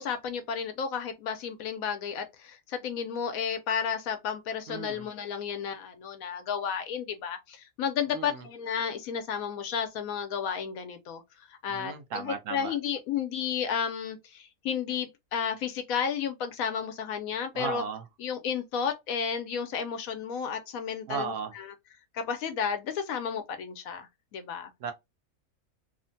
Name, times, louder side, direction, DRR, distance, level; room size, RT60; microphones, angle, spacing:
voice 1, 0.0-11.2 11.6-17.8 18.2-21.7 22.1-24.7, left 7 dB, 75° left, 1.0 m, -32 dB
voice 2, 4.7-5.1 8.1-8.4 11.7-12.7 17.5-18.0 21.1-21.5 24.8-24.9, right 6 dB, 65° right, 0.9 m, -35 dB
3.1 x 2.1 x 2.6 m
omnidirectional pair, 1.5 m